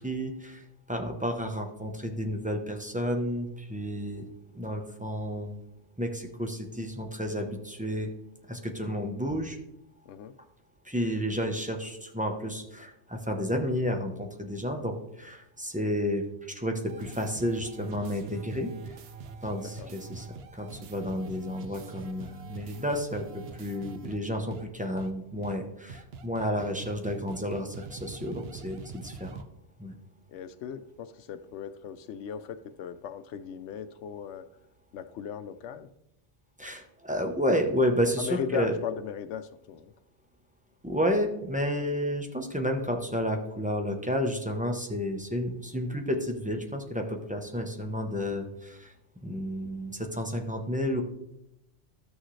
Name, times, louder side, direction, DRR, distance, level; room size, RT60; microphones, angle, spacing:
voice 1, 0.0-4.2 4.5-5.6 6.0-8.1 8.5-9.6 10.8-18.7 19.4-20.3 20.5-29.4 29.8-29.9 36.6-38.7 40.8-48.9 49.2-51.0, equal, 10° right, 3 dB, 0.8 m, -31 dB
sound 1, 16.8-24.2 24.5-24.6 25.0-25.1 25.4-25.6 25.9-29.4, right 4 dB, 65° right, 0.9 m, -44 dB
voice 2, 19.6-19.9 30.3-34.5 34.9-35.9 38.2-39.9, left 8 dB, 85° left, 11 dB, 0.9 m, -37 dB
13.0 x 6.3 x 3.2 m, 0.85 s
omnidirectional pair, 1.1 m